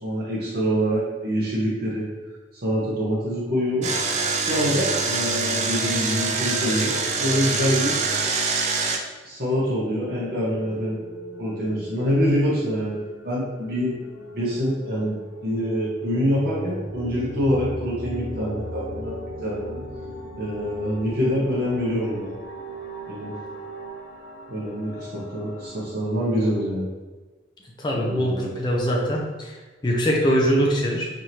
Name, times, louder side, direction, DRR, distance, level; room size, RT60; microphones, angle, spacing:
voice 1, 0.0-2.1 2.6-3.9 4.4-8.0 9.2-11.0 11.4-14.0 14.3-19.8 20.3-22.3 23.1-23.3 24.5-26.9 27.9-28.5, equal, 55° right, -7 dB, 0.9 m, -25 dB
Engine, 3.8-9.0, right 4 dB, 40° right, 0.4 m, -24 dB
sound 1, 9.8-25.9, equal, 75° left, 0.8 m, -38 dB
voice 2, 27.8-29.6 29.8-31.1, equal, 25° left, -2 dB, 0.5 m, -22 dB
4.8 x 2.7 x 2.9 m, 1.3 s
head